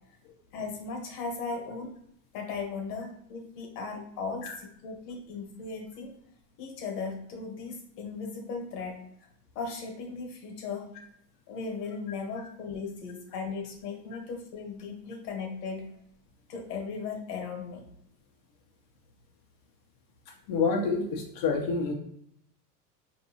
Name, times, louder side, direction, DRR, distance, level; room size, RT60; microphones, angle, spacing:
voice 1, 0.5-1.9 2.3-6.1 6.6-9.0 9.5-10.9 11.5-15.9 16.5-17.8, left 4 dB, 70° left, 2 dB, 1.4 m, -37 dB
voice 2, 20.3-21.9, left 4 dB, 50° left, 0 dB, 0.8 m, -28 dB
4.5 x 2.8 x 2.8 m, 0.72 s
hypercardioid pair, 95°, 50 cm